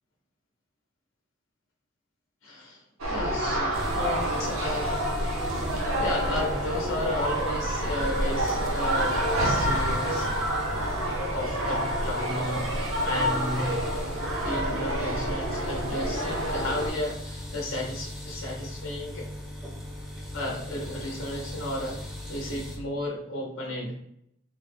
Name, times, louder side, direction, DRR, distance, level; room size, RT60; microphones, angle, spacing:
voice 1, 2.4-5.0 5.7-10.3 11.3-13.8 14.1-19.3 20.3-22.0 22.3-23.9, left 1 dB, 70° left, -2 dB, 0.7 m, -34 dB
sound 1, 3.0-16.9, right 1 dB, 75° right, 0.7 m, -28 dB
sound 2, 3.7-22.8, left 1 dB, ahead, 0.6 m, -39 dB
3.4 x 2.1 x 3.2 m, 0.73 s
head